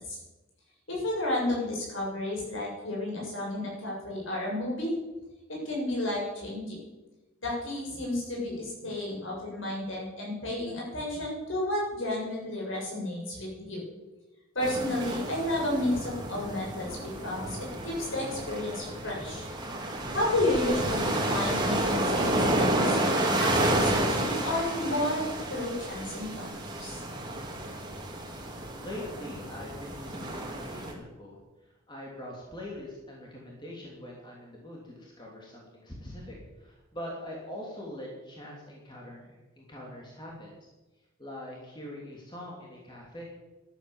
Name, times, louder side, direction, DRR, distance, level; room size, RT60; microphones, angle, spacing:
voice 1, 0.9-4.9 5.5-6.8 7.4-13.8 14.6-19.4 20.1-23.0 23.4-27.0, left 1 dB, 65° left, -3 dB, 7.2 m, -32 dB
sound 1, 14.6-30.9, right 1 dB, 20° right, 2.7 m, -30 dB
voice 2, 28.7-31.4 31.9-40.6 41.2-43.2, left 1 dB, 20° left, -3 dB, 3.0 m, -43 dB
13.5 x 11.5 x 7.3 m, 1.1 s
head